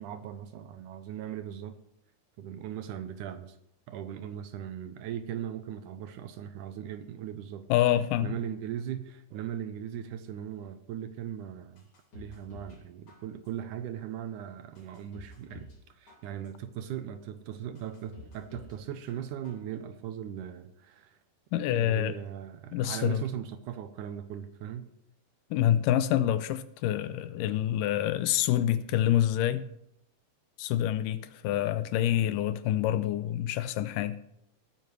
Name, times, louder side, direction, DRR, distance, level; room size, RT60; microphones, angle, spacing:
voice 1, 0.0-1.8 2.4-3.6 3.9-7.7 8.2-11.8 12.1-21.2 21.5-24.9, right 10 dB, 75° right, 2.0 m, -39 dB
voice 2, 7.7-8.3 21.5-22.2 22.7-23.2 25.5-29.7 30.6-34.2, left 12 dB, 80° left, 2.1 m, -27 dB
sound 1, 11.8-12.8 13.1-13.7 14.2-14.3 14.8-15.8 16.1-16.7 17.2-17.3 17.8-18.8 19.1-19.7 20.0-20.1, left 3 dB, 40° left, 3.1 m, -50 dB
19.0 x 9.3 x 3.2 m
omnidirectional pair, 4.0 m